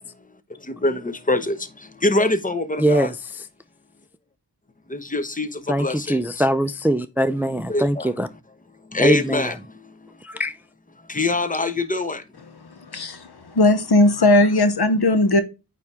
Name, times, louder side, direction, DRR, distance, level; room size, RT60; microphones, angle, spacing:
voice 1, 0.8-1.6 2.0-3.1 4.9-6.2 7.7-8.1 8.9-9.5 11.1-12.2, left 2 dB, 20° left, 0.9 m, -23 dB
voice 2, 2.8-3.4 5.7-8.3 9.0-9.5 10.2-10.6, right 1 dB, 5° right, 0.5 m, -22 dB
voice 3, 12.6-15.4, left 2 dB, 60° left, 1.0 m, -18 dB
8.7 x 3.5 x 3.6 m
cardioid pair, 45°, 42 cm